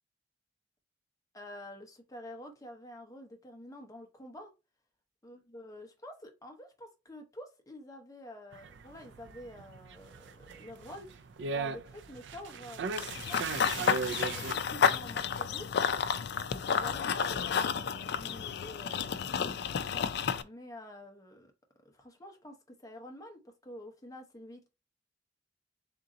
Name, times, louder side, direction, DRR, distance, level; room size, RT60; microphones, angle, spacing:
voice 1, 1.3-4.5 5.2-15.8 16.5-20.1 20.4-21.5 21.8-24.7, left 1 dB, 20° left, 0.9 m, -49 dB
sound 1, 8.5-14.6, right 5 dB, 70° right, 0.4 m, -38 dB
Run / Bird vocalization bird call bird song, 13.0-20.4, left 7 dB, 60° left, 0.4 m, -31 dB
3.7 x 2.8 x 3.7 m
head